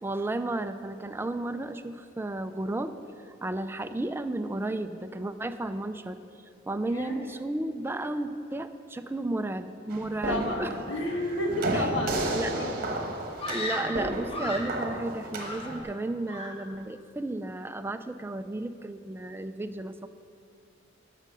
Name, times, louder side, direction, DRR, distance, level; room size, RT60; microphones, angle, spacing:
voice 1, 0.0-6.2 6.7-10.7 11.7-11.9 12.3-12.5 13.5-20.1, right 2 dB, 10° right, 9 dB, 0.4 m, -33 dB
voice 2, 6.8-7.2 10.3-12.8, left 1 dB, 75° left, 1 dB, 1.6 m, -31 dB
sound 1, 9.9-15.8, right 1 dB, 50° right, 1.2 m, -33 dB
Screaming, 13.4-14.8 15.3-16.0 16.3-16.7, left 1 dB, 30° left, 1.3 m, -36 dB
12.0 x 6.6 x 6.2 m, 2.5 s
head